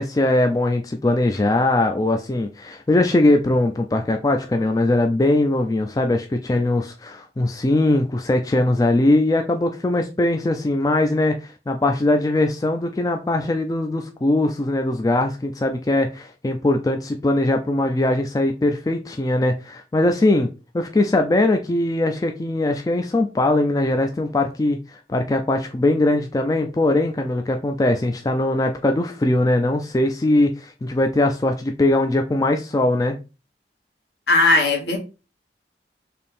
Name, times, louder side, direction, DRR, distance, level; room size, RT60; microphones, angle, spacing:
voice 1, 0.0-20.5 20.7-33.2, left 2 dB, 20° left, 0.3 m, -21 dB
voice 2, 34.3-35.0, left 2 dB, 70° left, 1.3 m, -17 dB
3.5 x 2.7 x 4.2 m
head